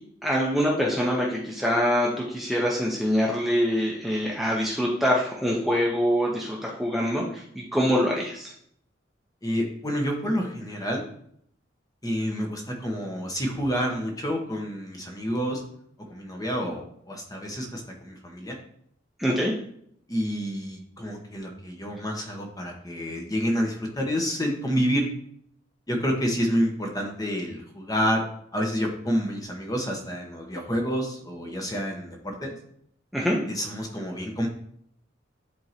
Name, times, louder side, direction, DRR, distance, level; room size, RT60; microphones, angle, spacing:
voice 1, 0.2-8.5 19.2-19.5 33.1-33.4, equal, ahead, -3 dB, 0.8 m, -24 dB
voice 2, 9.4-11.0 12.0-15.6 16.1-18.6 20.1-25.1 25.9-28.2 28.5-32.5 33.5-34.5, equal, 20° left, 1 dB, 1.1 m, -28 dB
11.0 x 3.7 x 2.9 m, 0.67 s
head